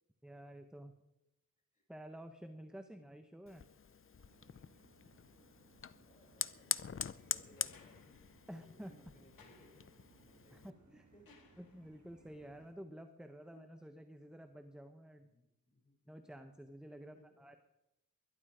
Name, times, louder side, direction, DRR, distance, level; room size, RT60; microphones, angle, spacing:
voice 1, 0.2-0.9 1.9-3.6 8.5-8.9 10.5-11.0 11.6-15.3 16.1-17.6, equal, ahead, 8 dB, 1.1 m, -51 dB
Fire, 3.5-10.7, left 6 dB, 40° left, 0.6 m, -44 dB
sound 1, 4.2-12.7, right 3 dB, 55° right, 4.2 m, -67 dB
voice 2, 5.6-11.5 15.2-15.9 17.0-17.4, left 1 dB, 20° left, 0 dB, 6.8 m, -66 dB
sound 2, 7.6-12.2 13.7-13.8, left 5 dB, 85° left, 2.3 m, -68 dB
21.5 x 11.5 x 5.0 m, 0.87 s
wide cardioid pair, 80°, 34 cm